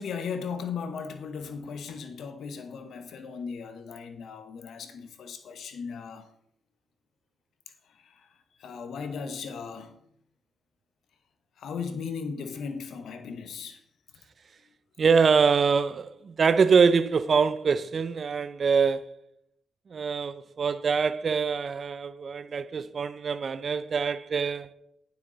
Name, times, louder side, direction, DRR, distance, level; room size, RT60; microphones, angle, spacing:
voice 1, 0.0-6.3 7.9-8.3 8.6-10.0 11.6-13.8, left 6 dB, 80° left, 1.1 m, -37 dB
voice 2, 15.0-19.2 19.9-24.7, right 5 dB, 60° right, 0.5 m, -24 dB
9.3 x 8.0 x 3.9 m
supercardioid pair, 55°, 0 cm